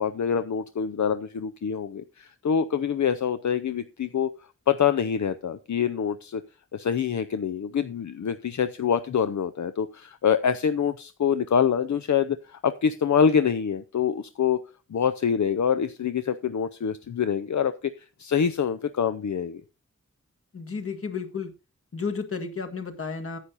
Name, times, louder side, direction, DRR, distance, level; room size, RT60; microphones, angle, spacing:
voice 1, 0.0-4.3 4.7-6.4 6.7-14.6 14.9-17.7 18.2-19.6, left 7 dB, 75° left, 11 dB, 0.6 m, -25 dB
voice 2, 20.5-21.5 21.9-23.4, left 5 dB, 50° left, 4 dB, 1.8 m, -32 dB
10.0 x 8.4 x 4.0 m, 0.30 s
wide cardioid pair, 100°, 29 cm